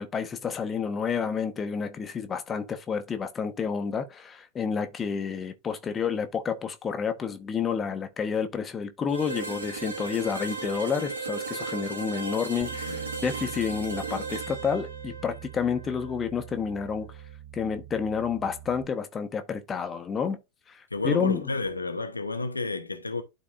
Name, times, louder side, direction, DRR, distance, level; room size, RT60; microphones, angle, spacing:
voice 1, 0.0-17.1 17.5-20.4 20.7-21.4, left 6 dB, 20° left, 1.0 m, -30 dB
sound 1, 9.1-16.9, right 4 dB, 75° right, 2.2 m, -36 dB
Bass guitar, 12.6-18.9, right 12 dB, 10° right, 2.1 m, -44 dB
voice 2, 12.9-13.2 20.9-23.2, left 3 dB, 80° left, 1.0 m, -31 dB
12.0 x 4.0 x 2.5 m
figure-of-eight pair, 90°, 0 cm